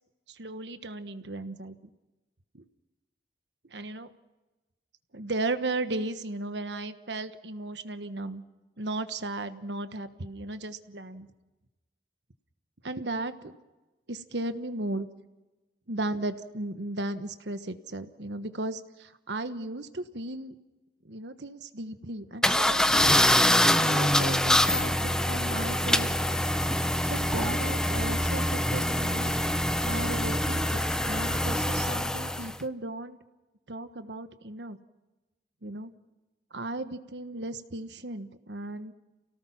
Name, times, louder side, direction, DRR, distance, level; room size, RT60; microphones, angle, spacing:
voice 1, 0.3-1.7 2.5-2.6 3.7-4.1 5.1-8.4 8.8-11.3 12.8-13.6 14.1-15.1 15.9-20.5 21.0-23.2 23.8-26.1 27.1-29.3 29.8-33.2 33.7-34.8 35.6-35.9 36.5-38.9, right 2 dB, 80° right, 10 dB, 1.3 m, -35 dB
sound 1, 22.4-32.6, left 1 dB, 5° left, 0.7 m, -25 dB
29.0 x 18.0 x 5.9 m, 1.1 s
head